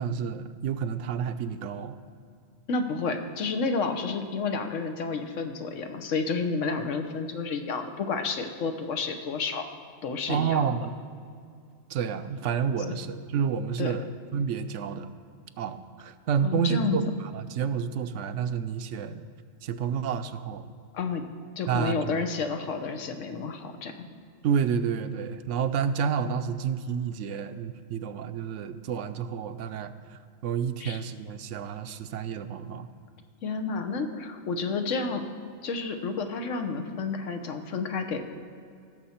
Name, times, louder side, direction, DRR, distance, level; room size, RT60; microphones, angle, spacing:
voice 1, 0.0-2.0 10.3-10.9 11.9-14.1 14.3-15.1 15.6-17.0 17.3-19.2 19.6-20.6 21.7-22.2 24.4-29.9 30.4-32.9, right 7 dB, 80° right, 10 dB, 0.9 m, -29 dB
voice 2, 2.7-9.7 10.0-10.7 12.9-13.0 13.8-14.0 16.4-17.0 20.9-21.2 21.6-24.1 30.8-31.0 33.4-35.2 35.6-38.2, left 4 dB, 90° left, 6 dB, 1.2 m, -30 dB
17.0 x 6.9 x 4.3 m, 2.3 s
omnidirectional pair, 1.2 m